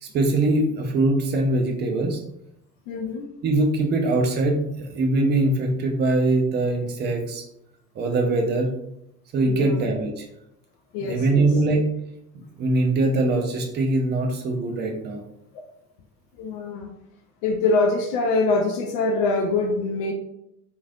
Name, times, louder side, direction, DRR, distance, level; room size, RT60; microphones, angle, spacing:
voice 1, 0.0-2.2 3.4-7.4 8.0-8.7 9.3-10.3 11.0-11.8 12.6-15.2, right 2 dB, 25° right, 1 dB, 0.5 m, -22 dB
voice 2, 2.9-3.3 9.5-9.8 10.9-11.5 16.4-16.9 17.4-20.1, left 3 dB, 40° left, 2 dB, 0.4 m, -24 dB
3.1 x 2.5 x 2.3 m, 0.80 s
figure-of-eight pair, 65°, 47 cm